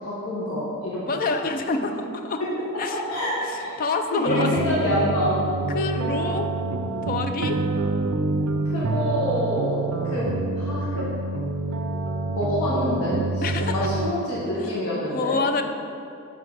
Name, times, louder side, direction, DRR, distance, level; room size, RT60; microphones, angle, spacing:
voice 1, 0.0-1.1 2.9-3.8 4.1-5.3 5.9-6.1 8.6-11.1 12.3-15.4, left 1 dB, 70° left, -8 dB, 1.2 m, -27 dB
voice 2, 1.1-2.4 2.8-3.0 3.4-4.5 5.7-6.5 7.0-7.6 13.4-13.9 15.1-15.6, left 3 dB, 40° left, 6 dB, 0.4 m, -27 dB
sound 1, 4.3-14.1, right 3 dB, 65° right, 0.4 m, -27 dB
7.1 x 3.8 x 4.9 m, 2.6 s
head